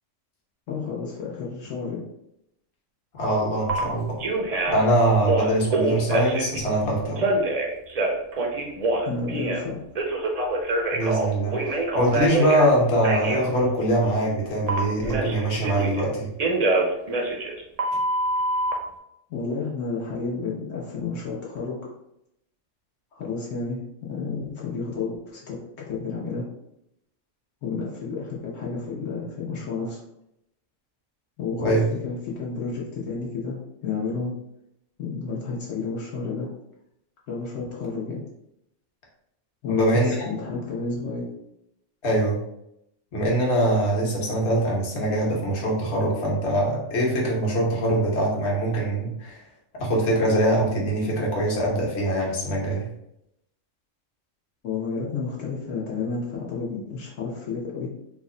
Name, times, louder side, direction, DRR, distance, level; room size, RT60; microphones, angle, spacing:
voice 1, 0.7-2.0 9.0-9.8 19.3-21.8 23.1-23.8 24.1-25.6 25.8-26.4 27.6-30.0 31.4-34.3 35.0-36.5 37.3-38.2 39.6-41.2 54.6-57.9, left 4 dB, 80° left, -5 dB, 1.1 m, -31 dB
voice 2, 3.1-4.1 4.7-7.3 10.9-16.3 31.6-31.8 39.7-40.3 42.0-42.4 43.1-49.4 49.8-52.9, right 1 dB, 65° left, -3 dB, 1.2 m, -23 dB
Telephone, 3.7-3.8 4.2-4.9 5.2-6.6 7.2-9.6 10.0-12.7 13.0-13.4 14.7-16.0 16.4-18.7, right 2 dB, 50° right, 0.5 m, -25 dB
3.4 x 2.1 x 3.7 m, 0.81 s
omnidirectional pair, 1.3 m